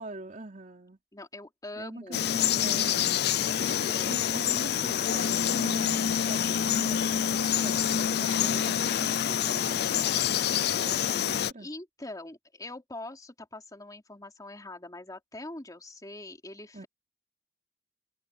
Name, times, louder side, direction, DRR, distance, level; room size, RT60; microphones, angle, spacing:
voice 1, 0.0-1.0 1.8-3.2 3.8-10.3 10.7-11.7 16.7-16.9, right 2 dB, 45° right, 3.3 m, -43 dB
voice 2, 1.1-2.2 3.6-4.2 11.6-16.9, left 2 dB, 20° left, 3.3 m, -43 dB
Frog, 2.1-11.5, left 9 dB, 65° left, 0.5 m, -27 dB
head